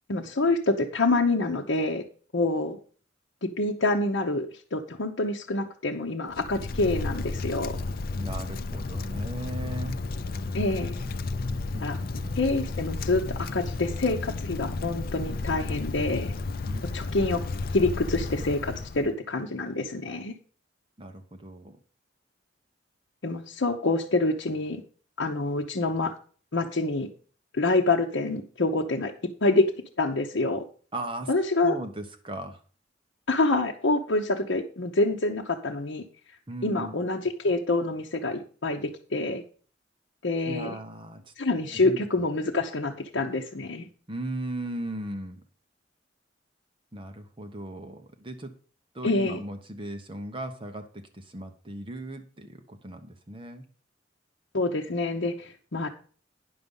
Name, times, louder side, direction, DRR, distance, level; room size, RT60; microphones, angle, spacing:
voice 1, 0.1-2.0 2.3-2.8 3.6-7.8 10.5-11.0 11.8-12.0 12.4-16.3 16.9-17.4 17.7-20.3 23.2-24.8 25.2-26.1 26.5-27.1 27.5-29.1 29.4-29.7 30.0-30.6 31.3-31.8 33.3-36.0 36.6-39.4 40.2-40.7 41.4-43.9 49.0-49.4 54.5-55.9, left 2 dB, 70° left, -1 dB, 0.9 m, -26 dB
Wind, 6.3-19.1, left 3 dB, 50° left, 0.5 m, -32 dB
voice 2, 8.2-10.0 11.7-12.4 16.7-16.8 21.0-21.8 30.9-31.3 31.6-32.6 36.5-37.0 40.4-41.3 41.8-42.2 44.1-45.4 46.9-48.5 48.9-53.6, right 1 dB, 25° right, 7 dB, 0.9 m, -37 dB
9.8 x 6.7 x 5.4 m, 0.40 s
head